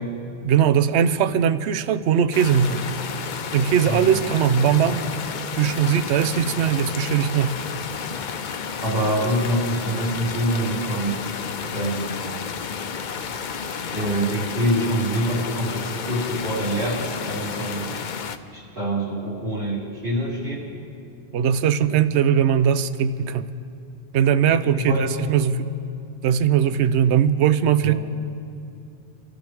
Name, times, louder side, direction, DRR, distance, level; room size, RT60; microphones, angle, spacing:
voice 1, 0.4-2.8 3.5-5.0 5.6-7.6 21.3-23.5 24.1-25.7 26.2-27.9, right 8 dB, 80° right, 13 dB, 0.9 m, -20 dB
sound 1, 2.3-18.4, left 6 dB, 50° left, 0.7 m, -31 dB
voice 2, 3.8-4.3 8.8-11.2 11.7-12.2 13.9-17.9 18.5-20.6 24.5-25.3 27.8-28.0, right 1 dB, 60° right, -8 dB, 4.5 m, -25 dB
25.0 x 12.5 x 3.5 m, 2.5 s
omnidirectional pair, 1.1 m